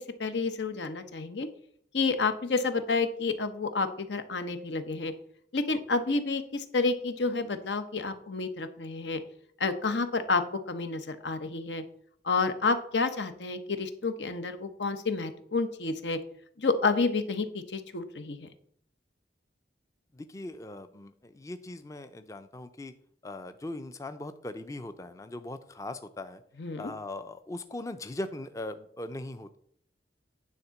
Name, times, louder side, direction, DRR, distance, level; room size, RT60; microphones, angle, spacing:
voice 1, 0.0-1.5 1.9-5.1 5.5-9.2 9.6-11.8 12.2-16.2 16.6-18.5 26.6-26.9, left 4 dB, 85° left, 9 dB, 0.9 m, -30 dB
voice 2, 20.1-22.9 23.2-26.4 26.8-29.6, left 2 dB, 20° left, 9 dB, 0.4 m, -40 dB
9.9 x 3.7 x 7.0 m, 0.64 s
head